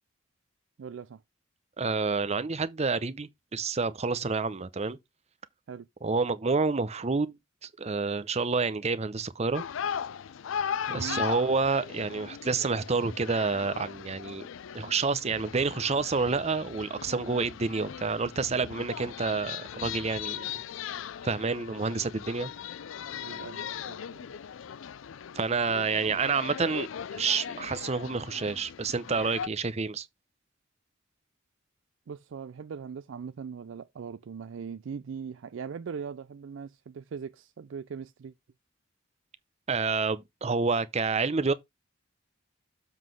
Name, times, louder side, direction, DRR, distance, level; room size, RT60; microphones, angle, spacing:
voice 1, 0.8-1.2 5.7-5.9 10.9-11.3 23.2-24.3 32.1-38.3, right 6 dB, 70° right, 0.4 m, -40 dB
voice 2, 1.8-5.0 6.0-7.4 7.6-9.6 10.9-14.4 14.7-20.6 21.2-22.5 25.3-26.9 27.1-30.1 39.7-41.5, right 4 dB, 35° right, 0.7 m, -28 dB
sound 1, 9.5-29.5, left 8 dB, 80° left, 0.4 m, -38 dB
7.3 x 3.9 x 6.1 m
head